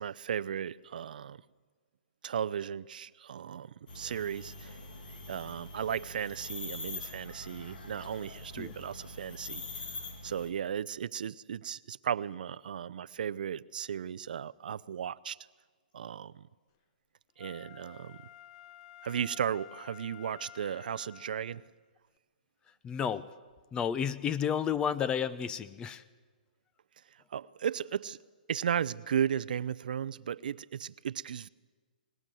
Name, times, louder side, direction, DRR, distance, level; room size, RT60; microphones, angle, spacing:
voice 1, 0.0-1.4 2.2-4.8 5.3-9.6 10.2-15.4 15.9-16.4 17.4-18.2 19.0-21.6 27.3-28.2 28.5-31.5, right 8 dB, 70° right, 0.6 m, -35 dB
sound 1, 3.9-10.5, left 3 dB, 80° left, 2.6 m, -44 dB
Wind instrument woodwind instrument, 17.4-21.7 22.2-22.3, left 11 dB, 40° left, 0.9 m, -52 dB
voice 2, 22.8-23.3 23.7-26.0, left 8 dB, 15° left, 0.6 m, -31 dB
22.5 x 19.5 x 7.7 m
hypercardioid pair, 145°, 5 cm